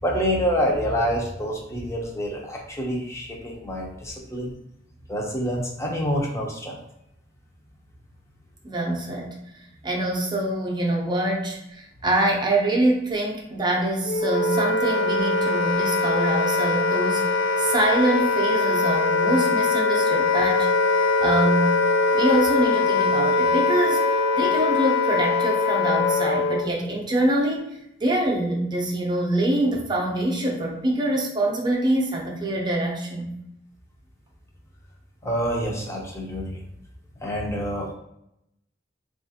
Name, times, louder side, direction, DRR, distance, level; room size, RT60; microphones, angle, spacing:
voice 1, 0.0-4.5 5.1-6.8 35.2-36.6 37.2-37.9, equal, 15° left, -2 dB, 0.6 m, -27 dB
voice 2, 8.6-9.3 9.8-17.2 17.6-20.7 21.2-21.7 22.1-24.0 24.3-27.6 28.0-33.3, right 1 dB, 25° right, -1 dB, 0.6 m, -24 dB
Wind instrument woodwind instrument, 14.1-26.7, left 3 dB, 65° left, 0.4 m, -22 dB
3.6 x 2.4 x 2.7 m, 0.79 s
head